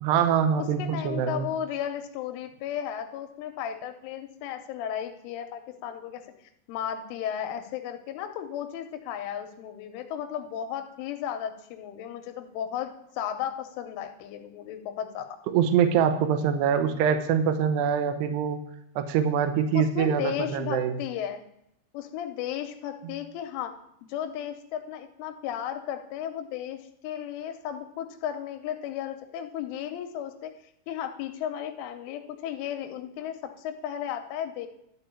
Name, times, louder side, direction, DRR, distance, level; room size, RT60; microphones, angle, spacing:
voice 1, 0.0-1.5 15.5-18.6 19.0-21.0 23.0-23.1, right 8 dB, 80° right, 7 dB, 2.6 m, -24 dB
voice 2, 0.6-6.2 6.7-12.9 13.1-15.3 19.7-21.4 21.9-23.7 24.1-30.5 30.9-34.7, left 10 dB, 85° left, 7 dB, 3.2 m, -34 dB
12.5 x 4.5 x 8.3 m, 0.78 s
omnidirectional pair, 5.7 m